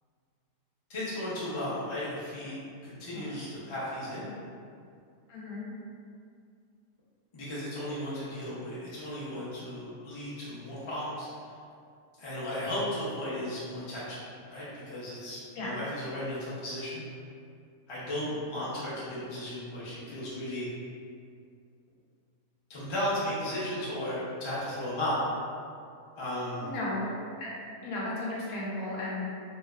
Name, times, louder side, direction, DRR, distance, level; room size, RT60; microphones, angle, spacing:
voice 1, 0.9-4.3 7.3-11.3 12.2-14.2 14.5-17.0 17.9-20.7 22.7-25.2 26.2-26.7, left 1 dB, 40° left, -9 dB, 0.4 m, -35 dB
voice 2, 5.3-5.7 15.6-15.8 26.6-29.2, left 1 dB, 80° left, -5 dB, 1.1 m, -35 dB
2.7 x 2.0 x 2.2 m, 2.3 s
omnidirectional pair, 1.5 m